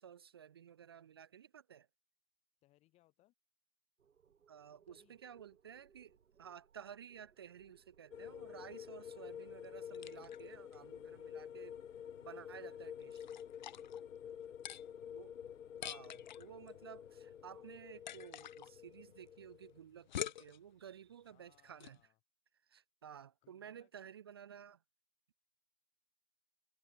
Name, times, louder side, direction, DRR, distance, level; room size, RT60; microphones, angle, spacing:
voice 1, 0.0-1.9 4.5-11.8 12.2-13.3 15.1-15.3 15.8-22.0 22.7-24.8, right 8 dB, 20° right, 0.7 m, -54 dB
voice 2, 2.6-3.3 4.8-5.2 14.2-15.0 21.3-22.2 23.4-23.9, left 17 dB, 15° left, 6.9 m, -72 dB
sound 1, 4.0-9.6, right 7 dB, 80° right, 6.6 m, -69 dB
sound 2, 8.1-19.8, left 8 dB, 70° left, 1.8 m, -50 dB
sound 3, 9.2-22.1, left 10 dB, 35° left, 1.1 m, -50 dB
hypercardioid pair, 175°, 40 cm